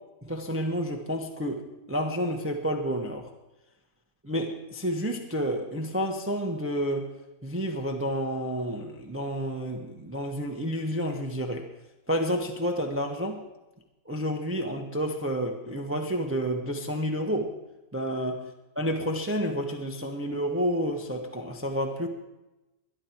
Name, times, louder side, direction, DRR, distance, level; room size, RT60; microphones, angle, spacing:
voice 1, 0.2-3.3 4.2-7.1 7.4-11.7 12.1-13.4 14.0-17.5 17.9-18.4 18.7-22.1, equal, 10° right, 3 dB, 1.1 m, -30 dB
22.0 x 11.0 x 4.6 m, 1.0 s
omnidirectional pair, 1.9 m